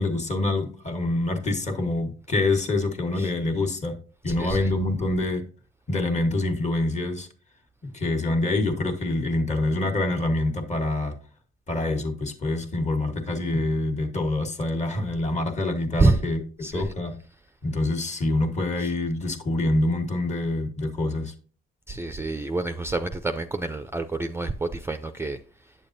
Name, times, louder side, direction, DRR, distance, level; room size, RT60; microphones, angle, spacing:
voice 1, 0.0-4.0 4.2-5.4 5.9-7.3 7.8-11.1 11.7-16.4 16.7-17.1 17.6-21.3, left 2 dB, 35° left, 1.4 m, -26 dB
voice 2, 4.3-4.7 16.0-16.2 16.6-16.9 18.8-18.9 21.9-25.7, right 3 dB, 10° right, 0.4 m, -27 dB
8.4 x 7.0 x 2.6 m
cardioid pair, 90°, 20 cm